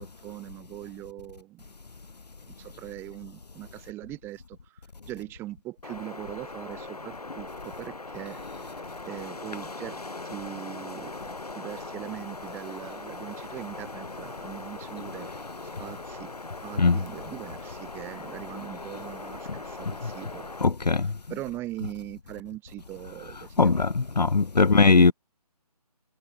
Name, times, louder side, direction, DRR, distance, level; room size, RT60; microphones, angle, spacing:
voice 1, 0.0-1.6 2.5-4.8 5.0-8.4 9.1-11.3 11.5-15.3 15.8-16.3 16.6-20.5 20.8-23.9 24.9-25.1, right 16 dB, 10° right, 7.7 m, -41 dB
Wind, 5.8-20.7, left 3 dB, 70° left, 3.9 m, -40 dB
voice 2, 20.6-21.1 23.6-23.9 24.2-25.1, left 4 dB, 85° left, 0.6 m, -19 dB
figure-of-eight pair, 150°, 20 cm